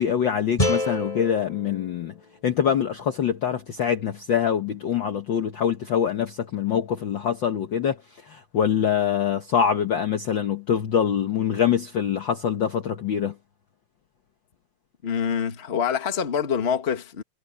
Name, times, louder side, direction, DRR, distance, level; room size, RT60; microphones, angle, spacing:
voice 1, 0.0-2.1 2.4-8.0 8.2-13.3, left 8 dB, 75° left, 1.0 m, -24 dB
sound 1, 0.6-3.7, left 1 dB, 10° left, 6.9 m, -30 dB
voice 2, 15.0-17.2, left 7 dB, 35° left, 0.9 m, -25 dB
omnidirectional pair, 3.7 m